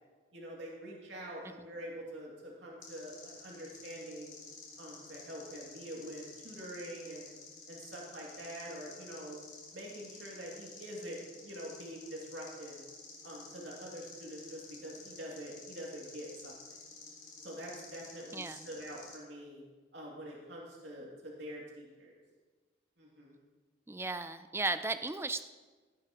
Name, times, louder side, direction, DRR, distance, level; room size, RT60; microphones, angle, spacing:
voice 1, 0.3-4.3 4.8-7.3 7.7-9.4 9.7-12.8 13.2-16.5 17.4-19.6 19.9-22.2 23.0-23.3, equal, 85° right, -4 dB, 2.6 m, -45 dB
sound 1, 2.8-19.2, left 4 dB, 45° left, 2.8 m, -52 dB
voice 2, 18.3-18.7 23.9-25.4, right 3 dB, 15° right, 11 dB, 0.4 m, -35 dB
16.0 x 11.0 x 3.0 m, 1.3 s
head